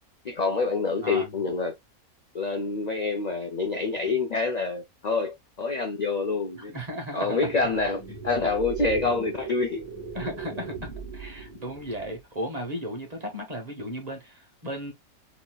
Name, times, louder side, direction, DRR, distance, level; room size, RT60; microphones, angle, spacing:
voice 1, 0.2-1.7 2.3-6.7 7.1-9.9, left 3 dB, 45° left, 0.6 m, -27 dB
voice 2, 1.0-1.3 6.7-7.5 10.1-14.9, equal, 30° right, 1.6 m, -35 dB
sound 1, 7.4-12.2, right 6 dB, 15° left, 1.6 m, -38 dB
4.1 x 3.6 x 2.3 m
omnidirectional pair, 1.5 m